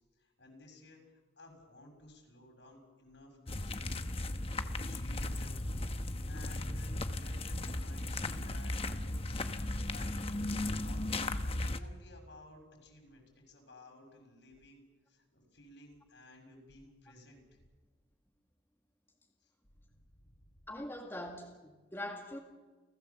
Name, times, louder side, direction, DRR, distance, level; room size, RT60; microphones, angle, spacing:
voice 1, 0.2-4.1 4.7-5.6 5.9-9.5 9.8-11.0 11.6-14.8 15.1-17.4 19.4-19.5 20.2-20.4, left 1 dB, 70° left, 2 dB, 6.7 m, -56 dB
sound 1, 3.5-11.8, left 2 dB, 30° left, 1.0 m, -36 dB
voice 2, 20.7-22.4, left 1 dB, 15° left, 0 dB, 2.0 m, -42 dB
30.0 x 16.0 x 7.2 m, 1.3 s
head